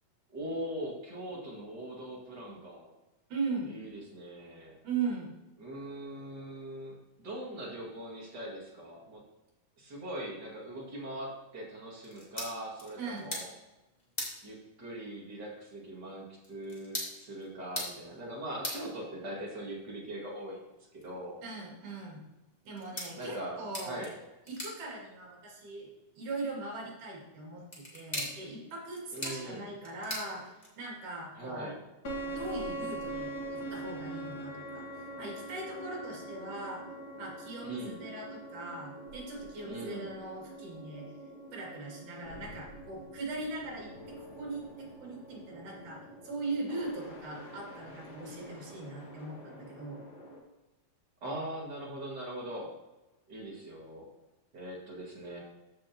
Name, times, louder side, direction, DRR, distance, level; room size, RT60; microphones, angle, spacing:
voice 1, 0.3-2.9 3.6-4.8 5.6-9.2 9.8-13.5 14.4-20.6 20.9-21.4 23.2-24.1 29.1-29.7 31.3-31.8 37.6-38.0 39.6-40.1 51.2-52.7 53.3-54.1 54.5-55.4, right 1 dB, 35° right, -3 dB, 2.4 m, -41 dB
voice 2, 3.3-3.7 4.8-5.3 13.0-13.3 21.4-22.2 22.7-24.1 24.5-25.9 26.2-30.5 30.8-31.8 32.3-34.8 35.2-36.8 37.2-41.1 41.5-50.0, right 3 dB, 70° right, -3 dB, 4.1 m, -40 dB
sound 1, 12.0-31.0, left 1 dB, 15° left, 1.7 m, -45 dB
sound 2, 32.0-50.4, right 1 dB, 40° left, 1.7 m, -44 dB
14.5 x 6.3 x 3.0 m, 1.1 s
omnidirectional pair, 3.8 m